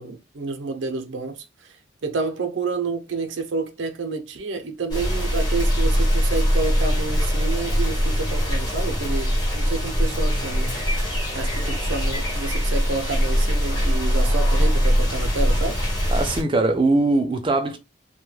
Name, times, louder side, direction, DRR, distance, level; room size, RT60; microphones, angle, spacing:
voice 1, 0.0-1.7 2.0-10.7 11.3-15.8, right 4 dB, 85° right, 0.5 m, -29 dB
sound 1, 4.9-16.4, equal, 20° left, 1.1 m, -22 dB
voice 2, 16.1-17.8, right 2 dB, 25° right, 0.5 m, -21 dB
2.2 x 2.1 x 3.1 m
head